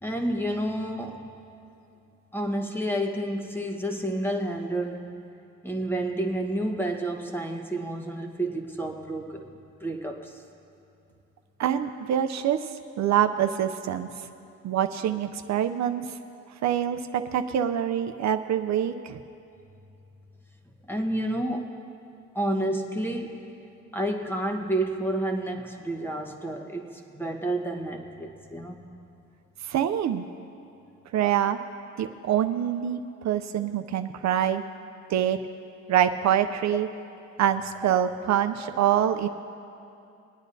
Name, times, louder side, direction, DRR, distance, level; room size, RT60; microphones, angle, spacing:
voice 1, 0.0-1.3 2.3-5.1 5.6-9.5 9.8-10.4 17.1-17.3 18.7-18.8 20.9-21.8 22.3-23.4 23.9-28.8 35.0-35.1 36.8-37.0, right 1 dB, 5° left, 3 dB, 1.2 m, -30 dB
voice 2, 11.6-12.7 13.0-14.1 14.6-16.0 16.6-19.2 29.6-30.2 31.1-31.6 32.0-33.0 33.2-34.6 35.1-35.4 35.9-36.9 37.4-39.3, right 10 dB, 65° right, 8 dB, 0.6 m, -25 dB
24.5 x 9.1 x 2.7 m, 2.7 s
cardioid pair, 90°, 30 cm